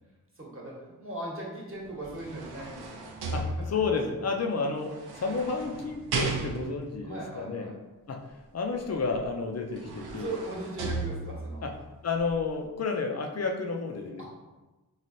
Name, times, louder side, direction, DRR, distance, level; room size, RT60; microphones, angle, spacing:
voice 1, 0.4-3.5 5.1-5.3 7.0-7.7 10.2-11.6 14.2-14.3, right 2 dB, 35° right, -4 dB, 1.1 m, -39 dB
sound 1, 1.8-4.1 4.9-6.9 9.1-9.2 9.6-11.6 12.2-12.3, right 3 dB, 80° right, 0.6 m, -35 dB
voice 2, 3.3-7.7 8.1-8.2 8.5-10.4 11.6-11.7 12.0-14.3, left 4 dB, 45° left, 3 dB, 0.5 m, -31 dB
3.1 x 2.4 x 2.7 m, 1.1 s
cardioid pair, 45°, 38 cm